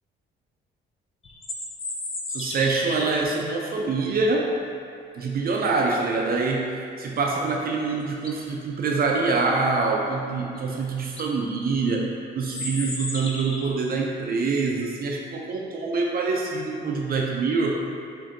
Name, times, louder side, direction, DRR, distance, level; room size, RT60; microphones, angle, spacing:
sound 1, 1.2-3.1 7.6-7.7 8.1-8.5 10.6-10.7 11.0-11.3 12.4-13.8, left 2 dB, 30° left, 0.6 m, -34 dB
voice 1, 2.3-4.5 5.1-17.8, right 4 dB, 50° right, 0 dB, 0.4 m, -25 dB
5.0 x 2.7 x 2.6 m, 2.6 s
cardioid pair, 90°, 20 cm